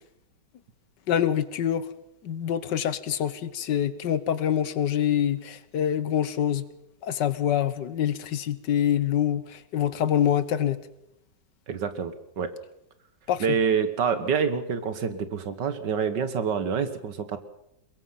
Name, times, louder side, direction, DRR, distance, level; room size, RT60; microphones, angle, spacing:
voice 1, 1.1-1.9 2.2-6.6 7.0-10.8 13.3-13.5, left 9 dB, 70° left, 1.6 m, -25 dB
voice 2, 11.7-12.6 13.4-17.4, right 6 dB, 70° right, 2.0 m, -27 dB
22.5 x 21.5 x 5.8 m
omnidirectional pair, 2.0 m